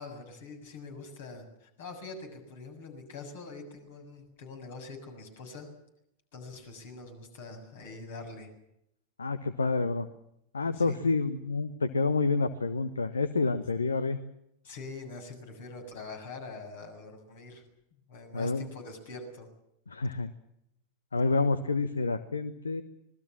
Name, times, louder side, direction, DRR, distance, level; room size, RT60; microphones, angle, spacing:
voice 1, 0.0-5.7 6.3-8.5 10.7-11.1 14.6-17.6 18.1-19.5, left 3 dB, 55° left, 5 dB, 7.2 m, -44 dB
voice 2, 9.2-10.1 10.5-14.2 18.3-18.7 19.9-20.3 21.1-22.8, left 3 dB, 75° left, 14 dB, 1.2 m, -28 dB
26.0 x 21.0 x 7.4 m, 0.77 s
figure-of-eight pair, 90°, 0 cm